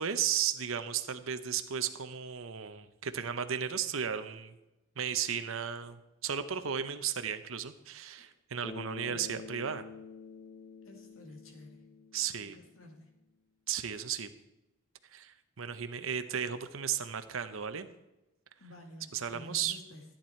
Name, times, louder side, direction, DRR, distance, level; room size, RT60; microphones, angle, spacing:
voice 1, 0.0-4.5 5.0-9.8 12.1-12.6 13.7-14.3 15.1-17.9 19.1-19.8, right 8 dB, 80° right, 9 dB, 0.8 m, -35 dB
Bass guitar, 8.6-12.8, left 5 dB, 50° left, 1.5 m, -48 dB
voice 2, 10.8-11.9 12.4-13.1 18.6-20.0, left 1 dB, 85° left, 3 dB, 2.4 m, -51 dB
14.0 x 9.0 x 4.5 m, 0.96 s
head